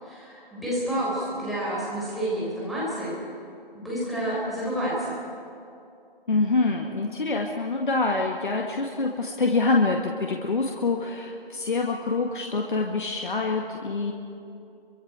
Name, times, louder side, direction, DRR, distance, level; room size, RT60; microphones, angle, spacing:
voice 1, 0.0-3.1 3.7-5.2 6.7-7.0, right 1 dB, ahead, -8 dB, 4.1 m, -29 dB
voice 2, 6.3-14.1, left 3 dB, 55° left, 1 dB, 1.8 m, -25 dB
27.0 x 24.0 x 4.8 m, 2.5 s
figure-of-eight pair, 155°, 29 cm